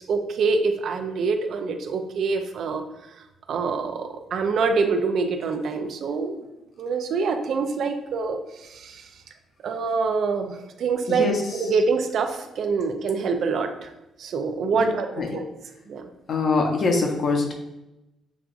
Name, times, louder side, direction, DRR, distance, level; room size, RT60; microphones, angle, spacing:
voice 1, 0.0-2.8 3.5-6.5 6.8-9.1 9.6-13.9 14.2-15.5 15.9-16.0, right 4 dB, 65° right, 7 dB, 0.4 m, -25 dB
voice 2, 11.1-11.7 14.7-14.8 15.2-15.3 16.3-17.5, left 3 dB, 55° left, 1 dB, 0.8 m, -23 dB
5.8 x 2.5 x 2.4 m, 0.93 s
cardioid pair, 90°, 0 cm